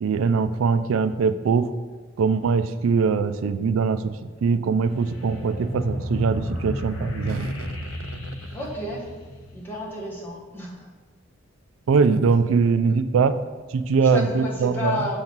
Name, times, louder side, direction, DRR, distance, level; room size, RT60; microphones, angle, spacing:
voice 1, 0.0-1.7 2.2-4.2 4.4-7.8 11.9-13.4 13.7-15.1, right 5 dB, 85° right, 12 dB, 0.4 m, -22 dB
sound 1, 4.9-9.9, left 1 dB, 85° left, 1.0 m, -32 dB
voice 2, 8.5-9.0 9.5-10.9 14.0-15.2, left 2 dB, 10° left, -5 dB, 1.4 m, -31 dB
6.9 x 4.0 x 6.0 m, 1.3 s
head